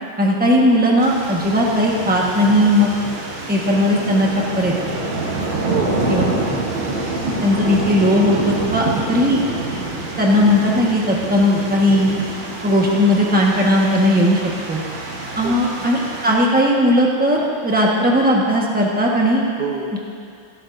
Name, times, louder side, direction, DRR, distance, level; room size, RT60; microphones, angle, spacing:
voice 1, 0.2-2.9 3.5-4.3 4.6-4.7 6.1-6.2 7.4-9.4 10.2-12.1 12.6-14.4 14.7-14.8 15.4-19.4 19.9-20.0, left 1 dB, 5° right, -3 dB, 1.1 m, -17 dB
sound 1, 1.0-16.3, right 2 dB, 80° right, 2.2 m, -26 dB
voice 2, 5.6-6.6 15.4-15.6 19.6-20.0, right 4 dB, 40° right, -2 dB, 0.7 m, -27 dB
16.0 x 12.5 x 2.7 m, 2.5 s
omnidirectional pair, 2.1 m